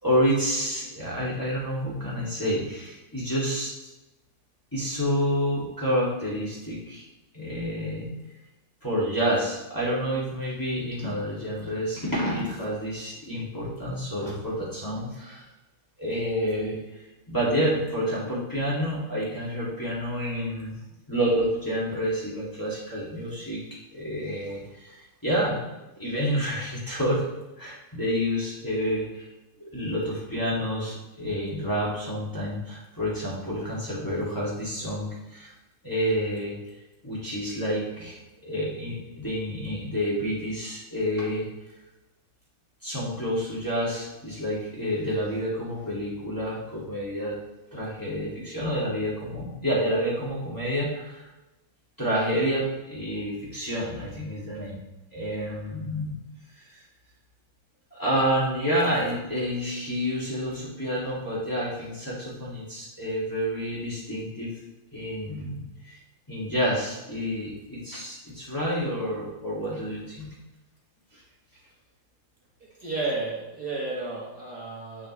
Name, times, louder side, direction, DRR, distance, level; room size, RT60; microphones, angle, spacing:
voice 1, 0.0-3.7 4.7-7.0 7.3-8.1 8.8-15.4 16.0-16.8 17.3-20.8 21.1-23.6 23.9-25.6 26.0-27.2 27.6-29.3 29.6-35.5 35.8-36.5 37.0-41.4 42.8-47.4 47.7-51.2 52.0-54.8 55.1-56.1 57.9-64.5 64.9-66.0 66.3-70.3, equal, 10° left, -7 dB, 2.3 m, -29 dB
voice 2, 72.8-75.1, right 3 dB, 50° right, -5 dB, 1.7 m, -32 dB
8.4 x 7.1 x 3.1 m, 1.0 s
omnidirectional pair, 2.4 m